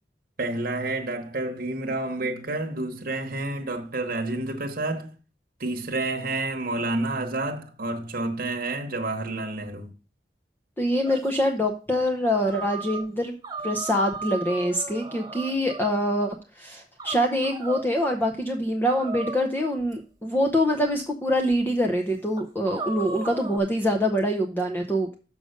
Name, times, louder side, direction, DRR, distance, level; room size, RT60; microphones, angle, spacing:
voice 1, 0.4-5.1 5.6-9.9, right 2 dB, 55° right, 1.1 m, -29 dB
voice 2, 10.8-13.3 13.6-25.2, equal, 10° left, 0.7 m, -25 dB
sound 1, 11.1-11.3 12.4-13.1 13.4-16.0 17.0-17.9 19.0-19.9 20.9-21.0 21.5-21.6 22.4-23.6, right 3 dB, 20° right, 1.4 m, -36 dB
6.7 x 5.1 x 6.5 m
head